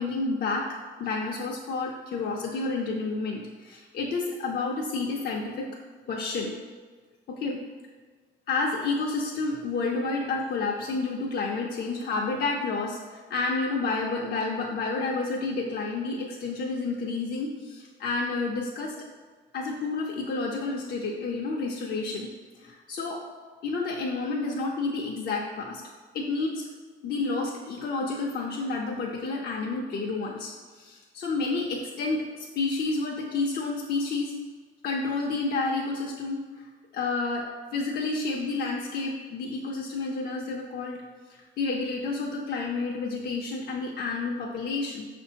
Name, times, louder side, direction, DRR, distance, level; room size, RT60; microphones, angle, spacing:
voice 1, 0.0-5.7 6.1-6.6 7.3-7.6 8.5-19.1 19.5-22.3 22.6-23.3 23.6-25.8 26.1-26.6 27.0-34.4 34.8-41.0 41.3-45.1, left 3 dB, 55° left, -1 dB, 0.4 m, -30 dB
5.4 x 2.5 x 2.7 m, 1.5 s
cardioid pair, 90°, 20 cm